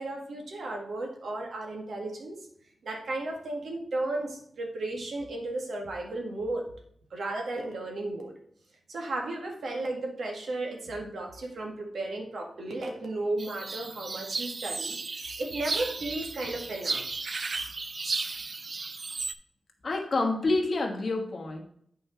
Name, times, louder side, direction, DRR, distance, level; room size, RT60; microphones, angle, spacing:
voice 1, 0.0-2.4 2.8-6.7 7.1-8.3 8.9-17.0, right 2 dB, 80° right, 1 dB, 1.8 m, -34 dB
sound 1, 13.4-19.3, right 3 dB, 40° right, 0.4 m, -34 dB
voice 2, 19.8-21.6, left 2 dB, 45° left, 2 dB, 1.4 m, -28 dB
8.8 x 4.7 x 4.5 m, 0.67 s
wide cardioid pair, 175°, 0 cm